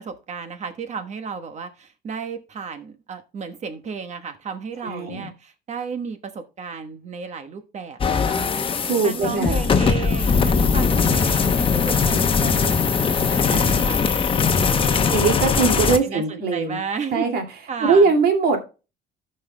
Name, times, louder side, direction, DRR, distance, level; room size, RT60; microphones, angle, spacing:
voice 1, 0.0-8.5 9.0-12.8 13.3-14.2 14.5-17.3 17.7-18.1, right 5 dB, 45° right, 1.2 m, -33 dB
voice 2, 4.8-5.3 8.9-9.6 13.5-13.7 15.1-16.8 17.1-17.4 17.8-18.6, right 4 dB, 65° right, 2.3 m, -21 dB
sound 1, 8.0-16.0, left 5 dB, 30° left, 0.8 m, -20 dB
14.5 x 5.5 x 2.2 m
cardioid pair, 110°, 17 cm